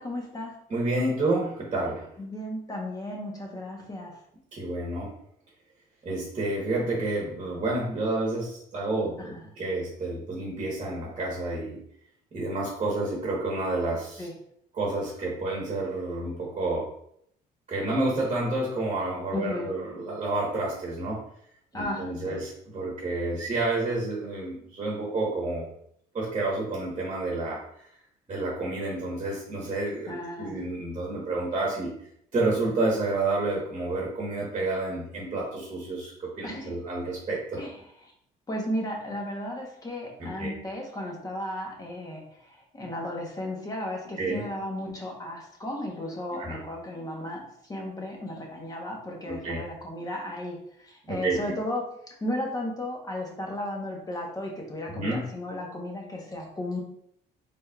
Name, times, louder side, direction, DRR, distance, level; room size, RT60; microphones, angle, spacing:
voice 1, 0.0-0.5 2.2-4.2 9.2-9.4 14.2-14.3 19.3-19.7 21.7-22.4 30.1-30.6 36.4-36.7 37.6-37.7 38.5-51.9 52.2-56.8, left 1 dB, 20° left, 0 dB, 1.0 m, -34 dB
voice 2, 0.7-2.1 4.5-5.1 6.0-11.8 12.3-14.3 14.7-16.9 17.7-21.2 21.7-25.7 26.1-27.9 28.3-31.9 32.3-37.7 40.2-40.5 44.2-44.4 46.3-46.6 49.3-49.6 51.1-51.4 54.9-55.2, right 2 dB, 35° right, -3 dB, 1.2 m, -29 dB
4.0 x 3.4 x 2.4 m, 0.70 s
cardioid pair, 110°, 17 cm